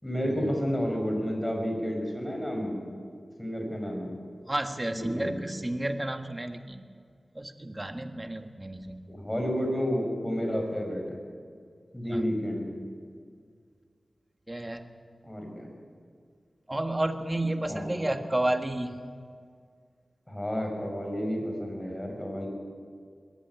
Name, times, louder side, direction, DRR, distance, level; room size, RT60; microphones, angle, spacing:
voice 1, 0.0-2.8 3.4-4.1 4.9-5.4 9.1-11.2 11.9-12.7 15.2-15.7 17.7-18.1 20.3-22.5, equal, 15° left, 2 dB, 5.5 m, -31 dB
voice 2, 4.5-6.8 7.3-9.0 12.1-12.2 14.5-14.8 16.7-19.0, right 1 dB, 20° right, 6 dB, 1.5 m, -31 dB
21.0 x 14.5 x 9.2 m, 2.1 s
wide cardioid pair, 70°, 0 cm